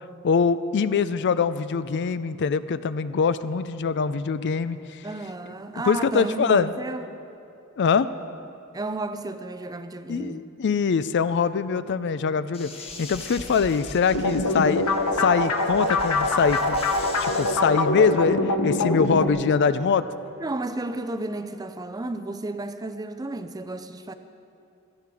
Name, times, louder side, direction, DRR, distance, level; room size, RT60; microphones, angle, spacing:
voice 1, 0.2-5.0 5.9-6.7 7.8-8.1 10.1-12.7 13.0-14.8 15.1-16.8 17.2-18.4 18.6-20.1, left 5 dB, 50° left, 14 dB, 0.4 m, -23 dB
voice 2, 5.0-7.1 8.7-10.4 20.4-24.1, right 2 dB, 15° right, 10 dB, 0.5 m, -32 dB
sound 1, 12.5-17.6, left 2 dB, 25° left, 1.4 m, -41 dB
sound 2, 14.1-19.3, left 2 dB, 80° left, 1.0 m, -24 dB
17.0 x 13.0 x 4.8 m, 2.7 s
head